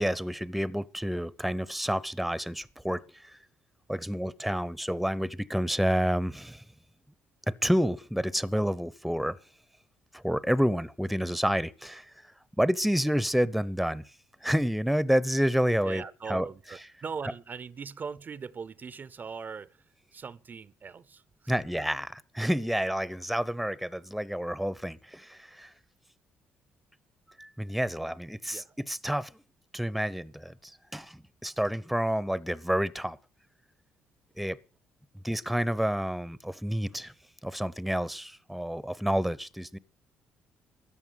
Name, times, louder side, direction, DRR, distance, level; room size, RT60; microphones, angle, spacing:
voice 1, 0.0-3.4 3.9-6.6 7.5-9.4 10.1-12.1 12.6-14.0 14.4-16.5 21.5-25.7 27.4-29.3 29.7-33.2 34.4-34.6 35.2-37.1 37.4-39.8, equal, ahead, 0.7 m, -29 dB
voice 2, 15.8-21.6 28.4-28.8, right 5 dB, 40° right, 0.6 m, -41 dB
13.5 x 8.7 x 8.1 m
supercardioid pair, 65°, 5 cm